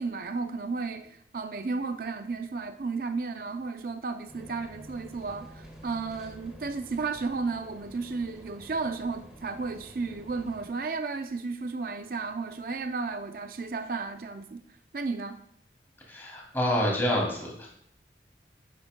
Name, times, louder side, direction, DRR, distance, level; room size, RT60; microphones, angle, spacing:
voice 1, 0.0-14.6 14.9-15.4, right 4 dB, 50° right, 0.5 m, -33 dB
sound 1, 4.3-10.7, equal, 5° right, 1.7 m, -49 dB
voice 2, 16.1-17.7, equal, 10° left, 2.4 m, -27 dB
11.5 x 10.0 x 2.2 m
head